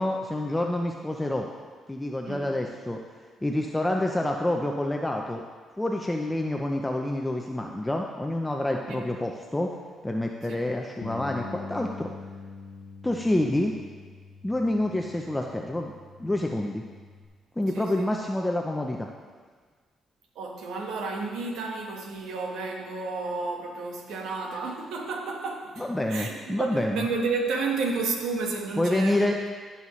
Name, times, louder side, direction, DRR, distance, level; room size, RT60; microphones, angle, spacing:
voice 1, 0.0-1.5 1.9-3.0 3.4-5.4 5.8-9.7 10.0-12.1 13.0-13.7 14.4-15.9 16.2-16.8 17.6-19.1 25.8-27.0 28.8-29.5, left 1 dB, 10° left, 1 dB, 0.6 m, -27 dB
Bass guitar, 11.0-17.3, left 5 dB, 80° left, 0.7 m, -44 dB
voice 2, 17.7-18.1 20.3-29.3, right 4 dB, 80° right, 1 dB, 1.3 m, -31 dB
14.5 x 5.6 x 3.2 m, 1.5 s
cardioid pair, 90°, 0 cm